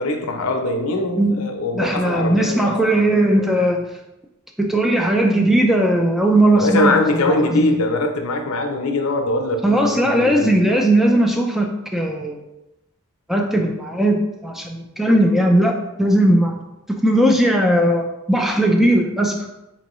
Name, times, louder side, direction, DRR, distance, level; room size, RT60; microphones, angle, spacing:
voice 1, 0.0-2.7 6.6-10.5, left 2 dB, 80° left, 4 dB, 0.6 m, -22 dB
voice 2, 1.7-3.8 4.6-7.7 9.6-12.4 13.3-16.6 16.9-19.5, right 1 dB, ahead, 2 dB, 0.3 m, -18 dB
4.5 x 3.0 x 3.0 m, 0.94 s
head